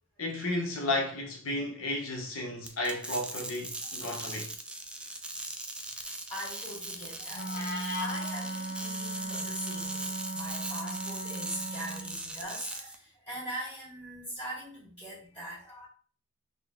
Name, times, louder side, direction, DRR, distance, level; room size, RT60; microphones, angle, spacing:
voice 1, 0.2-4.5, left 1 dB, 80° left, 1.0 m, -33 dB
sound 1, 2.6-12.9, right 2 dB, 5° right, 0.3 m, -39 dB
voice 2, 5.8-15.9, equal, 25° left, 1.6 m, -42 dB
Wind instrument woodwind instrument, 7.3-12.2, right 1 dB, 50° left, 0.6 m, -37 dB
3.8 x 2.3 x 3.6 m
head